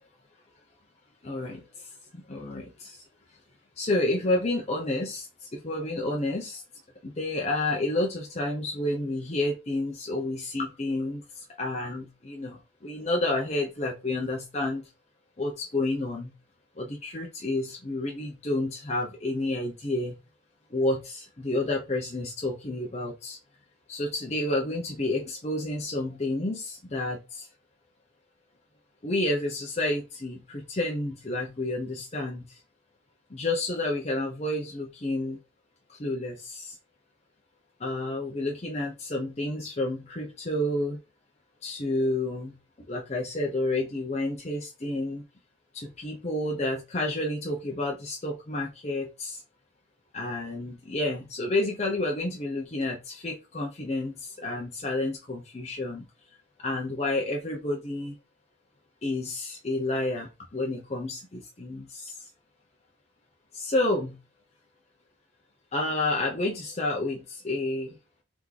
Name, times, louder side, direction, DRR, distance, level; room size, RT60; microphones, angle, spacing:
voice 1, 1.2-3.0 3.8-6.6 7.0-14.9 15.4-16.3 16.8-20.2 20.7-23.4 23.9-27.5 29.0-32.6 33.3-35.4 35.9-36.8 37.8-41.0 41.6-45.2 45.7-49.4 50.1-56.1 56.6-58.1 59.0-62.3 63.5-64.2 65.7-68.0, left 2 dB, 35° left, 0.6 m, -30 dB
3.5 x 3.1 x 3.7 m
head